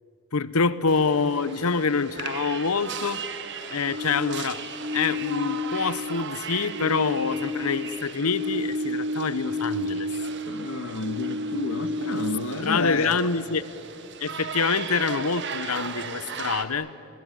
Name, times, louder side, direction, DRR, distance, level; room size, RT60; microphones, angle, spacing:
voice 1, 0.3-3.2 3.7-4.6 4.9-10.1 12.6-13.6 14.2-16.9, left 4 dB, 80° left, 16 dB, 0.9 m, -26 dB
sound 1, 0.9-16.6, right 6 dB, 55° right, 1.6 m, -38 dB
sound 2, 3.8-6.4 6.6-10.6 10.9-12.6, left 3 dB, 90° right, 3.9 m, -31 dB
voice 2, 10.4-13.2, left 2 dB, 65° left, 11 dB, 1.4 m, -30 dB
29.5 x 21.5 x 9.2 m, 2.8 s
head